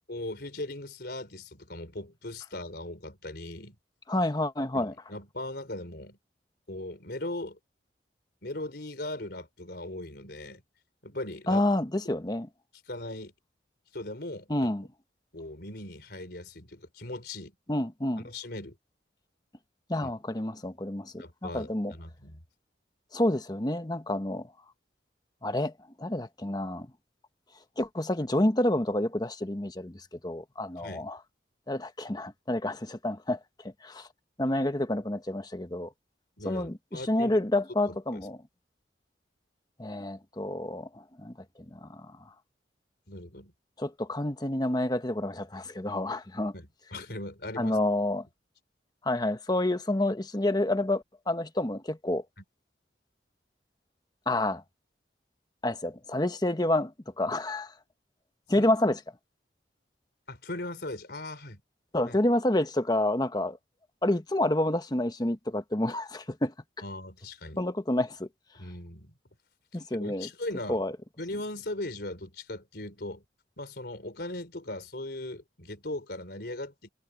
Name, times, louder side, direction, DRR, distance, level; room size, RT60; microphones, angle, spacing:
voice 1, 0.1-3.8 4.7-6.2 6.7-7.6 8.4-10.6 11.0-11.7 12.9-13.3 13.9-14.7 15.3-17.5 18.2-18.8 20.0-20.1 21.2-22.4 30.8-31.1 36.4-37.4 37.8-38.2 43.1-43.5 46.5-47.8 58.6-58.7 60.3-61.6 62.1-62.2 66.8-67.6 68.5-69.1 70.0-70.8 71.2-73.2 73.6-76.9, left 1 dB, 60° left, 4.2 m, -39 dB
voice 2, 4.1-4.9 11.5-12.5 14.5-14.8 17.7-18.2 19.9-21.9 23.1-24.5 25.4-25.7 26.0-26.9 27.8-31.2 31.7-33.4 33.8-34.1 34.4-35.9 36.4-38.4 39.8-41.3 41.7-42.2 43.8-46.5 47.6-48.3 49.0-52.2 54.3-54.6 55.6-57.7 58.5-59.0 61.9-63.6 64.0-66.5 67.6-68.3 69.7-70.3 70.7-70.9, left 1 dB, 20° left, 1.1 m, -29 dB
head